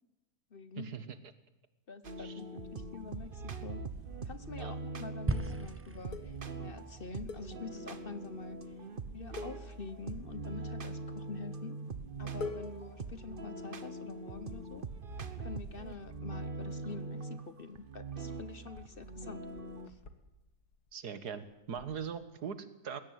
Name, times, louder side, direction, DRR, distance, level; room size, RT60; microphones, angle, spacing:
voice 1, 0.5-1.0 1.9-3.9 4.2-8.9 9.1-11.8 12.2-14.9 15.4-19.5 19.9-20.0, left 4 dB, 40° left, 13 dB, 1.0 m, -46 dB
sound 1, 2.0-19.9, right 3 dB, 35° right, 1.2 m, -42 dB
sound 2, 5.3-9.6, right 2 dB, 20° right, 0.4 m, -40 dB
sound 3, 6.1-8.1 8.4-8.6 8.9-9.1 9.4-10.4 11.2-11.7 12.0-12.1 12.4-14.4 15.0-15.7 15.9-22.2, left 4 dB, 80° left, 2.2 m, -49 dB
voice 2, 20.9-23.0, right 7 dB, 85° right, 13 dB, 2.0 m, -41 dB
21.0 x 16.5 x 9.3 m, 1.0 s
omnidirectional pair, 1.7 m